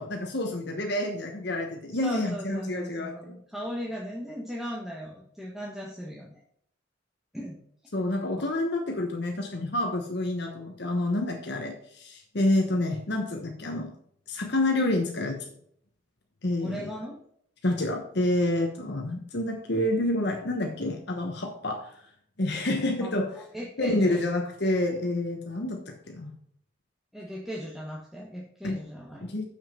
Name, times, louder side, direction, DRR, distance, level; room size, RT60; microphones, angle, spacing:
voice 1, 0.0-3.4 7.9-13.9 14.3-15.5 16.4-16.9 17.6-21.9 22.4-23.3 23.8-26.3 28.6-28.7 29.2-29.5, left 1 dB, 60° left, 2 dB, 1.2 m, -28 dB
voice 2, 1.9-6.4 7.3-7.6 8.4-8.5 16.6-17.2 23.0-24.2 27.1-29.3, equal, ahead, -4 dB, 1.4 m, -37 dB
7.2 x 6.2 x 5.7 m, 0.65 s
head